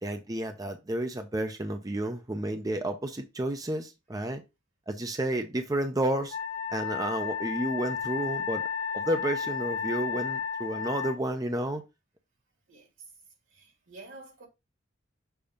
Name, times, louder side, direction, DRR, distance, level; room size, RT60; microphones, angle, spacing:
voice 1, 0.0-4.4 4.9-6.4 6.7-8.7 8.9-11.8, right 1 dB, 20° right, 0.6 m, -31 dB
Wind instrument woodwind instrument, 6.3-11.2, left 6 dB, 65° left, 1.6 m, -33 dB
voice 2, 12.7-13.1 13.5-14.5, right 3 dB, 85° right, 2.7 m, -49 dB
6.9 x 2.8 x 5.1 m
head